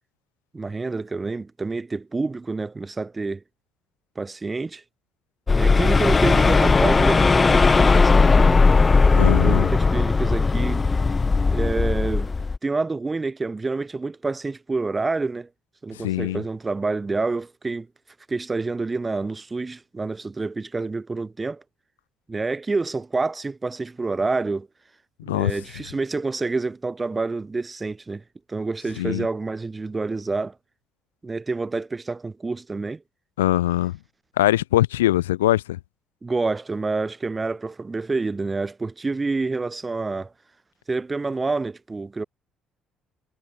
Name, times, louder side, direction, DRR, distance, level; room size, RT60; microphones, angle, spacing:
voice 1, 0.5-3.4 4.2-4.8 5.5-8.7 9.1-10.9 11.5-12.3 12.6-15.5 15.8-17.9 18.3-21.6 22.3-24.7 25.3-28.2 28.5-30.5 31.2-33.0 36.2-40.3 40.9-42.2, right 3 dB, 25° right, 4.8 m, -28 dB
sound 1, 5.5-12.6, left 4 dB, 30° left, 0.9 m, -17 dB
voice 2, 9.1-9.7 15.9-16.4 25.2-25.6 29.0-29.3 33.4-34.0 34.4-35.8, left 15 dB, 85° left, 0.7 m, -22 dB
hypercardioid pair, 50°, 0 cm